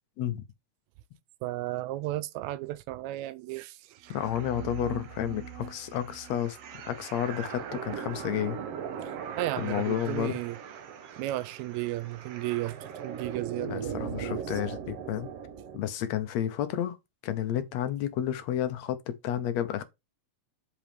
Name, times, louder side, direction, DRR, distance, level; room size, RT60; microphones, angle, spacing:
voice 1, 1.4-4.1 9.4-10.6 11.2-14.4, right 16 dB, 80° right, 1.8 m, -34 dB
sound 1, 4.0-15.8, right 7 dB, 65° right, 1.9 m, -39 dB
voice 2, 4.1-6.6 6.8-8.6 9.6-10.4 13.7-15.3 15.7-17.0 17.2-19.8, left 10 dB, 75° left, 2.0 m, -31 dB
7.8 x 5.0 x 3.5 m
omnidirectional pair, 3.3 m